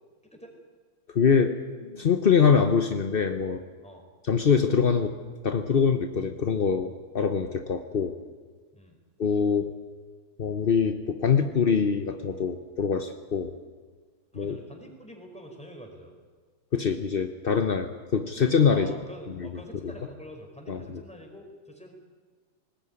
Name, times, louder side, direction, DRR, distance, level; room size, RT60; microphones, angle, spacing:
voice 1, 1.1-1.5 1.8-3.6 4.2-5.2 5.4-8.1 9.2-9.7 10.4-13.5 14.4-14.6 16.7-18.9 19.4-19.9 20.7-20.8, left 6 dB, 50° left, 7 dB, 0.7 m, -24 dB
voice 2, 14.3-16.1 18.7-21.9, equal, 5° left, 2 dB, 4.6 m, -46 dB
20.0 x 19.5 x 9.8 m, 1.5 s
omnidirectional pair, 2.4 m